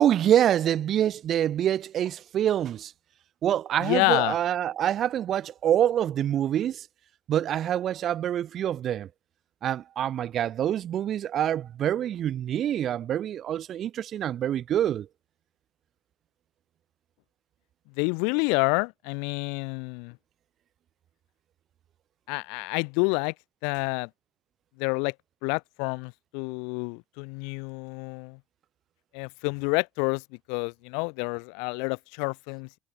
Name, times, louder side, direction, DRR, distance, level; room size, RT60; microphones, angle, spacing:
voice 1, 0.0-2.9 3.4-6.9 7.3-9.1 9.6-15.1, right 10 dB, 50° right, 2.5 m, -26 dB
voice 2, 3.8-4.4 18.0-20.2 22.3-23.3 23.6-24.1 24.8-25.1 25.4-28.4 29.1-30.2 30.5-32.7, left 38 dB, 75° left, 2.0 m, -28 dB
supercardioid pair, 90°, 0 cm